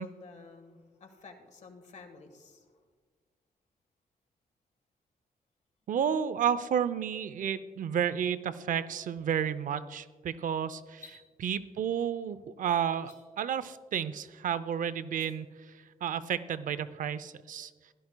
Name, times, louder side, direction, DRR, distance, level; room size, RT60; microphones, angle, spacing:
voice 1, 0.0-2.6, left 4 dB, 55° left, 5 dB, 1.4 m, -50 dB
voice 2, 5.9-17.7, right 8 dB, 65° right, 15 dB, 0.5 m, -32 dB
sound 1, 10.8-11.2 12.9-13.2 15.0-15.3, left 4 dB, 20° left, 3.8 m, -53 dB
16.0 x 12.0 x 2.2 m, 1.5 s
cardioid pair, 120°, 15 cm